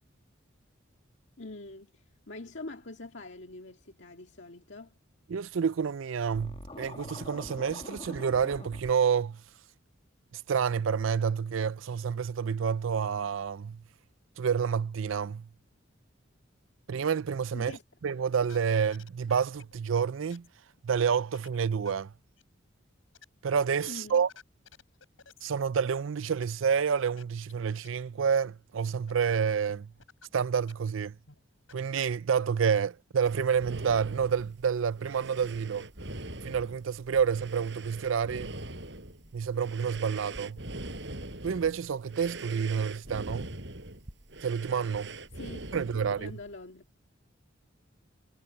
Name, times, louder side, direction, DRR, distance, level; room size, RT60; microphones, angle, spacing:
voice 1, 1.4-5.0 17.5-17.8 23.9-24.2 45.4-45.6 45.9-46.8, left 2 dB, 65° left, 2.0 m, -44 dB
voice 2, 5.3-9.4 10.3-13.8 14.4-15.5 16.9-17.7 18.0-20.5 20.8-22.1 23.4-24.3 25.4-29.9 30.3-31.2 31.7-35.9 36.4-38.6 39.3-40.6 41.4-43.5 44.4-45.2 45.7-46.3, right 6 dB, 80° right, 0.4 m, -29 dB
Scratching (performance technique), 6.3-8.9, left 1 dB, 30° left, 1.9 m, -44 dB
sound 1, 18.3-18.6 18.9-20.0 20.3-20.5 20.8-21.6 21.8-21.9 22.4-22.5 23.1-23.2 23.5-25.4 26.4-26.5 26.7-26.8 27.2-27.3 27.5-27.6 27.8-27.9 28.3-28.4 29.1-29.2 29.5-30.3 30.5-30.9 31.3-31.4 31.7-32.1, left 6 dB, 90° left, 6.7 m, -53 dB
sound 2, 33.2-46.5, right 2 dB, 60° right, 5.2 m, -42 dB
head